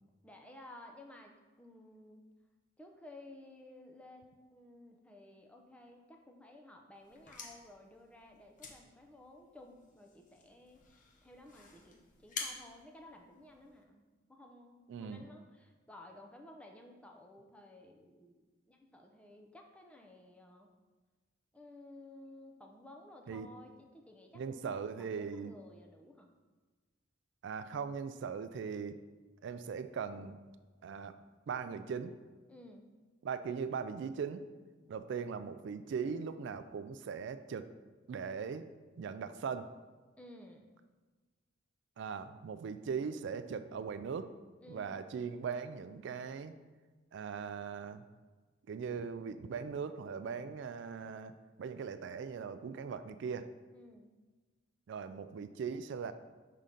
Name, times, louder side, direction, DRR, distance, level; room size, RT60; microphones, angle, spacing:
voice 1, 0.2-2.2 2.8-20.7 21.5-24.7 25.1-26.3 32.5-32.9 40.1-40.7 44.6-45.1 53.7-54.1, left 1 dB, 5° left, 2 dB, 0.5 m, -55 dB
sound 1, 7.0-13.8, left 4 dB, 45° left, 0.7 m, -49 dB
voice 2, 14.9-15.2 23.3-23.5 24.3-25.5 27.4-29.0 29.4-30.4 30.8-31.1 31.5-32.1 33.2-34.4 34.9-37.7 38.1-38.7 39.0-39.7 42.0-44.3 44.7-46.6 47.1-48.0 48.7-51.3 51.6-53.5 54.9-56.1, right 6 dB, 65° right, 11 dB, 0.3 m, -39 dB
5.7 x 3.7 x 5.1 m, 1.3 s
head